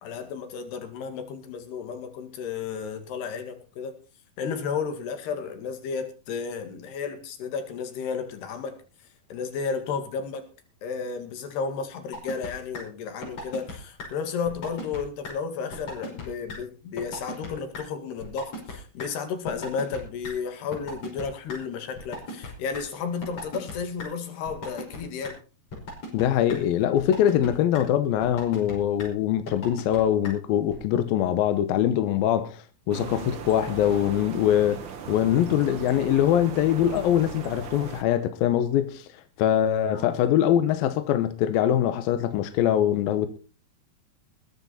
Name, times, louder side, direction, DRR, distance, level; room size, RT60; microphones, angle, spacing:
voice 1, 0.0-4.0 4.4-8.8 9.3-10.4 10.8-25.4 39.9-40.1, left 6 dB, 90° left, 4.2 m, -33 dB
sound 1, 12.1-12.5 12.7-12.8 13.2-13.7 14.0-14.1 14.5-15.0 15.2-15.3 15.7-16.2 16.5-16.6 17.0-17.5 17.7-17.8 18.2-18.7 19.0-19.1 19.5-20.3 20.7-21.6 22.0-22.8 23.2-23.7 24.0-24.1 24.5-25.0 25.2-25.3 25.7-26.2 26.5-26.6 27.0-27.5 27.7-27.8 28.2-28.7 29.0-29.1 29.5-30.0 30.2-30.3 30.7-30.8, left 2 dB, 40° left, 6.5 m, -36 dB
voice 2, 26.1-39.1 39.4-43.3, left 10 dB, 75° left, 2.7 m, -23 dB
sound 2, 32.9-38.0, right 6 dB, 75° right, 1.1 m, -38 dB
21.0 x 9.8 x 4.3 m
omnidirectional pair, 4.5 m